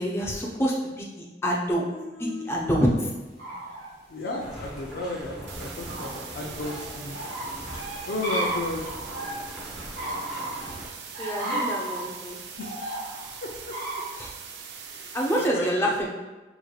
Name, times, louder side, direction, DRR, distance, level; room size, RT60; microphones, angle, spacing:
voice 1, 0.0-1.9 2.2-3.1 11.2-12.4 14.2-14.3 15.1-16.1, equal, 15° left, -3 dB, 0.5 m, -26 dB
voice 2, 1.9-3.0 4.1-7.2 8.1-8.9 11.4-11.7 12.6-12.7 13.4-13.7 14.8-15.7, left 2 dB, 70° left, -2 dB, 0.5 m, -34 dB
sound 1, 3.3-3.9 4.2-9.5 9.9-10.7 11.1-12.0 12.6-13.4 13.7-14.3, right 1 dB, 55° right, 1.2 m, -33 dB
sound 2, 4.4-10.9, right 1 dB, ahead, 0.9 m, -41 dB
sound 3, 5.5-15.5, right 6 dB, 70° right, 0.4 m, -42 dB
4.8 x 3.1 x 2.3 m, 1.2 s
head